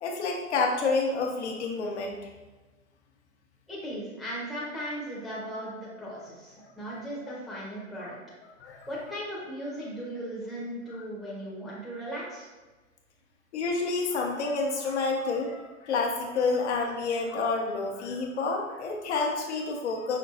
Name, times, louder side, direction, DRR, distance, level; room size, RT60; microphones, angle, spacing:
voice 1, 0.0-2.2 6.6-7.0 8.6-8.8 11.0-11.1 13.5-20.2, left 3 dB, 55° left, 1 dB, 1.0 m, -29 dB
voice 2, 3.7-8.2 8.9-12.5, equal, ahead, -8 dB, 0.8 m, -37 dB
5.6 x 3.7 x 2.4 m, 1.2 s
hypercardioid pair, 130°, 40 cm